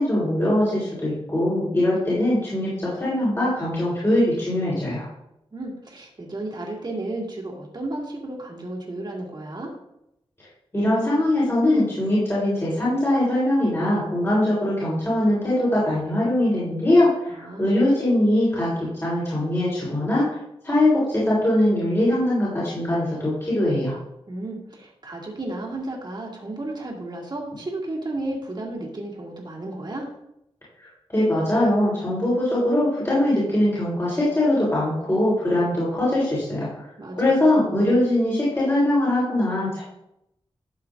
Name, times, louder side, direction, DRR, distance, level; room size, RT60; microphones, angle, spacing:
voice 1, 0.0-5.1 10.7-17.1 17.6-18.7 19.0-20.3 20.6-24.0 30.8-36.7 37.2-39.8, left 1 dB, 25° left, -8 dB, 3.7 m, -21 dB
voice 2, 5.5-9.7 17.3-17.7 24.3-30.1 37.0-37.4, right 2 dB, 45° right, -2 dB, 2.4 m, -33 dB
12.5 x 7.1 x 2.6 m, 0.81 s
wide cardioid pair, 85°, 10 cm